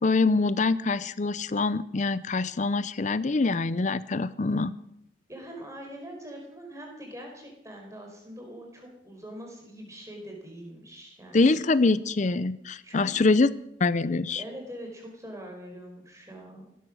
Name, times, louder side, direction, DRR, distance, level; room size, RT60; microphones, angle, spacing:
voice 1, 0.0-4.7 11.3-13.5 13.8-14.4, left 3 dB, 40° left, 17 dB, 0.5 m, -24 dB
voice 2, 5.3-11.6 12.8-13.1 14.4-16.7, equal, 15° right, 1 dB, 4.4 m, -43 dB
17.0 x 12.5 x 6.2 m, 0.79 s
head